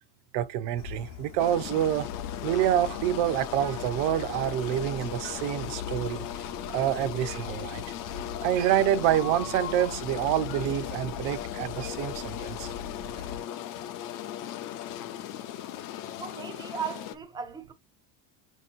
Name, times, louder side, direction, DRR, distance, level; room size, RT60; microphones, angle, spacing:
voice 1, 0.3-2.1 2.4-6.3 6.7-7.8 8.4-12.7 13.2-13.3, right 11 dB, 70° right, 0.8 m, -27 dB
sound 1, 0.8-13.4, left 6 dB, 65° left, 0.8 m, -41 dB
sound 2, 1.4-17.1, left 11 dB, 45° left, 0.5 m, -38 dB
voice 2, 16.2-17.7, right 7 dB, 10° right, 0.3 m, -37 dB
5.7 x 2.9 x 2.4 m
cardioid pair, 145°, 48 cm